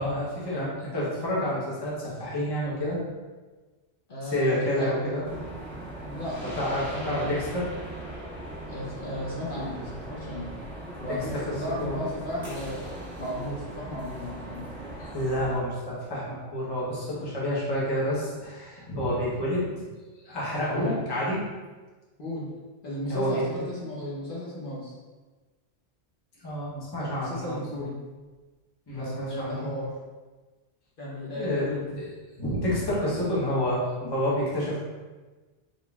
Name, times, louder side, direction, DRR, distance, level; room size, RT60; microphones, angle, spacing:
voice 1, 0.0-3.0 4.2-5.3 6.4-7.7 11.3-11.4 11.8-12.0 15.1-19.8 20.2-21.4 23.1-23.4 26.4-27.8 28.9-29.7 31.3-32.0 32.4-34.8, equal, 25° left, -7 dB, 0.9 m, -29 dB
voice 2, 4.1-5.2 6.0-6.4 6.9-7.4 8.7-10.5 11.0-12.8 13.2-14.7 20.7-21.0 22.2-22.5 22.8-24.9 27.0-28.0 28.9-29.9 31.0-31.9, left 1 dB, 55° left, -7 dB, 1.0 m, -35 dB
sound 1, 5.2-15.5, right 1 dB, 20° right, 1.4 m, -39 dB
3.9 x 3.7 x 2.3 m, 1.3 s
omnidirectional pair, 1.1 m